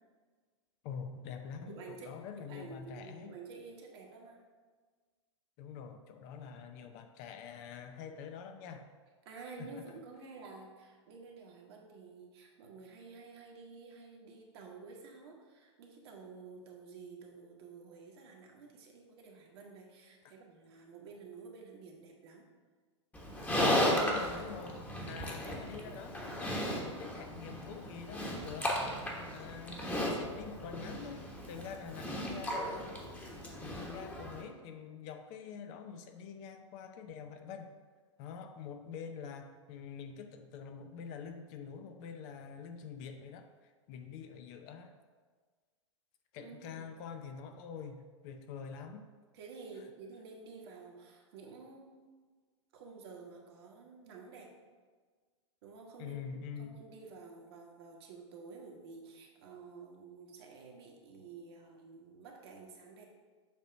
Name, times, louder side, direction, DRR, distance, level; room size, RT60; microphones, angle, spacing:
voice 1, 0.8-3.3 5.6-8.9 9.4-10.0 20.2-20.3 23.6-28.8 29.2-32.9 33.6-37.7 38.2-44.9 46.3-49.1 56.0-56.8, left 6 dB, 40° left, 7 dB, 0.6 m, -46 dB
voice 2, 1.7-2.1 2.4-4.4 9.2-22.5 25.0-25.3 46.4-46.8 49.3-52.1 52.7-54.5 55.6-56.2 56.6-63.1, right 4 dB, 55° right, 0 dB, 1.4 m, -51 dB
Livestock farm animals working animals, 23.1-34.4, equal, 10° left, 1.2 m, -35 dB
7.3 x 3.0 x 5.7 m, 1.5 s
figure-of-eight pair, 100°, 16 cm